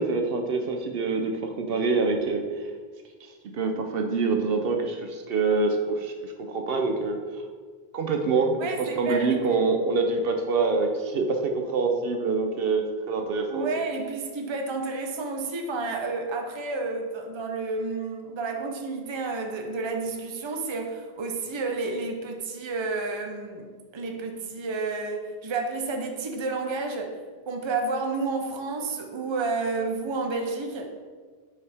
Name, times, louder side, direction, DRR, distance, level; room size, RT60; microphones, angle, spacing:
voice 1, 0.0-2.4 3.4-7.2 7.9-13.7, right 4 dB, 70° right, 4 dB, 0.8 m, -25 dB
voice 2, 8.6-9.6 13.5-27.1 27.5-30.9, right 3 dB, 30° right, 3 dB, 0.6 m, -30 dB
6.8 x 5.0 x 3.4 m, 1.5 s
omnidirectional pair, 1.1 m